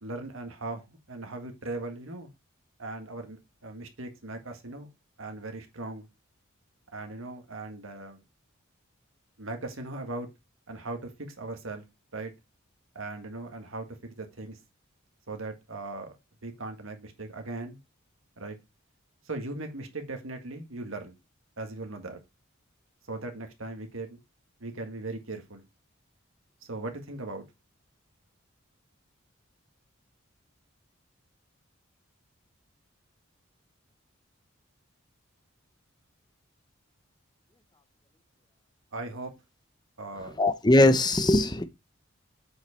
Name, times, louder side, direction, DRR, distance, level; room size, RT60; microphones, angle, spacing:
voice 1, 0.0-2.3 2.8-4.9 5.2-6.1 6.9-8.2 9.4-10.3 10.7-11.1 11.4-11.8 12.1-12.3 13.0-13.9 14.2-14.6 15.3-16.2 16.4-17.8 18.4-18.6 19.3-21.2 21.6-22.2 23.1-24.2 24.6-25.7 26.7-27.4 38.9-39.3 40.0-40.4, right 2 dB, 80° right, 1.8 m, -38 dB
voice 2, 40.4-41.6, left 1 dB, 20° left, 0.7 m, -20 dB
7.5 x 4.9 x 4.3 m
head